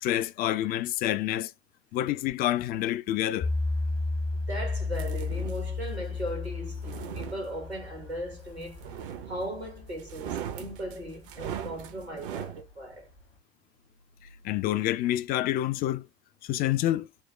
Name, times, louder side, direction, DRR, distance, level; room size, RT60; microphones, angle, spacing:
voice 1, 0.0-1.5 1.9-3.5 14.4-16.1 16.4-17.1, left 13 dB, 30° left, 0.4 m, -28 dB
sound 1, 3.4-12.7 13.2-13.3, left 3 dB, 65° left, 1.2 m, -34 dB
voice 2, 4.3-8.8 9.2-13.1, equal, 90° right, 1.7 m, -38 dB
sound 2, 5.0-5.7 6.6-7.9 8.8-9.7 10.0-12.6, right 9 dB, 55° right, 0.7 m, -39 dB
4.4 x 2.1 x 3.0 m
figure-of-eight pair, 70°, 31 cm